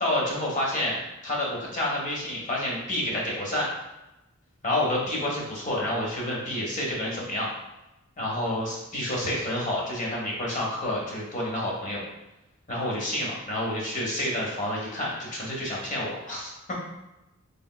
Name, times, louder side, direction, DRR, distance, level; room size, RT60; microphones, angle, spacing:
voice 1, 0.0-1.0 1.2-3.7 4.6-7.5 8.2-12.0 12.7-16.5, left 1 dB, 35° left, -4 dB, 1.1 m, -29 dB
4.8 x 3.4 x 2.2 m, 0.96 s
head